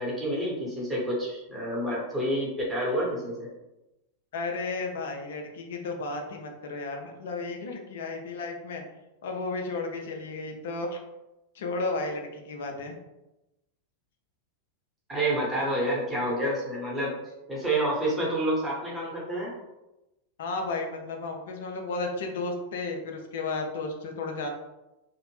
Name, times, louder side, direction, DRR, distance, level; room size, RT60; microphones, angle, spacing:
voice 1, 0.0-3.5 15.1-17.1 17.5-19.5, right 1 dB, 5° right, -5 dB, 1.0 m, -28 dB
voice 2, 4.3-8.8 9.2-11.0 11.5-13.0 20.4-24.5, left 3 dB, 60° left, 3 dB, 0.4 m, -33 dB
2.4 x 2.0 x 3.1 m, 0.97 s
figure-of-eight pair, 90°, 0 cm